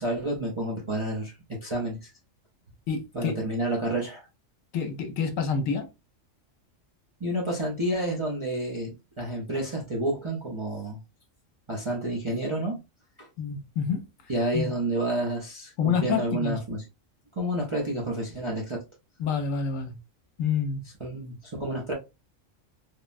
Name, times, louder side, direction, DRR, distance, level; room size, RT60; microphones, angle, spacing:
voice 1, 0.0-2.1 3.1-4.3 7.2-11.0 11.7-12.8 13.2-13.3 14.3-16.8 17.4-18.8 21.0-21.9, right 1 dB, 35° right, 0.5 m, -30 dB
voice 2, 2.9-3.4 4.7-5.9 13.4-14.1 14.5-14.7 15.8-16.6 19.2-20.0 20.4-20.9, left 6 dB, 75° left, 1.0 m, -28 dB
3.3 x 2.1 x 2.4 m
omnidirectional pair, 1.4 m